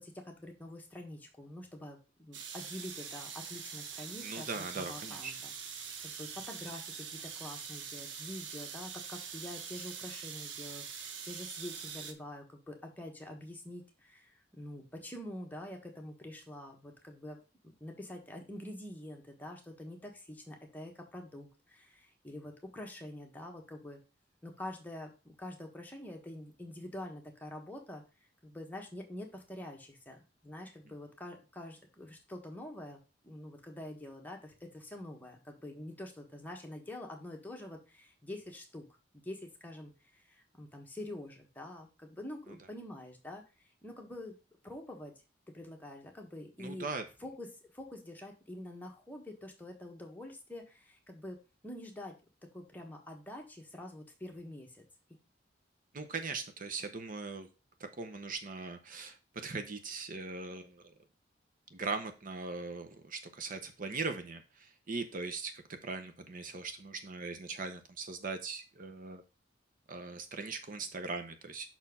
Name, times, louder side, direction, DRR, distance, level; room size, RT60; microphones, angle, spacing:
voice 1, 0.0-5.5 5.8-24.0 24.4-28.0 28.4-30.2 30.4-38.8 39.1-43.4 43.8-44.3 44.6-45.1 45.5-46.9 47.2-52.2 52.5-54.8, left 1 dB, 10° left, 1 dB, 1.5 m, -46 dB
sound 1, 2.3-12.1, right 6 dB, 85° right, 1.0 m, -44 dB
voice 2, 4.2-5.3 46.6-47.0 55.9-57.5 57.8-60.8 61.7-69.2 69.9-71.7, right 4 dB, 50° right, 7 dB, 0.8 m, -40 dB
6.0 x 4.4 x 5.4 m, 0.30 s
head